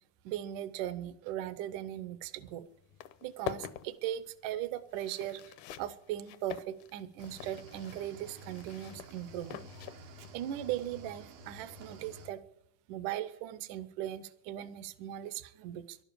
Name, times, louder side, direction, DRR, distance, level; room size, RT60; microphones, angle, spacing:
voice 1, 0.3-2.7 3.2-5.4 5.8-9.6 10.3-12.4 12.9-16.0, right 12 dB, 75° right, 14 dB, 2.1 m, -38 dB
sound 1, 2.4-2.5 2.8-10.3, left 11 dB, 80° left, 1.9 m, -45 dB
Cricket / Waves surf, 7.2-12.3, right 2 dB, 90° right, 3.5 m, -51 dB
12.5 x 12.0 x 8.3 m, 0.76 s
omnidirectional pair, 4.1 m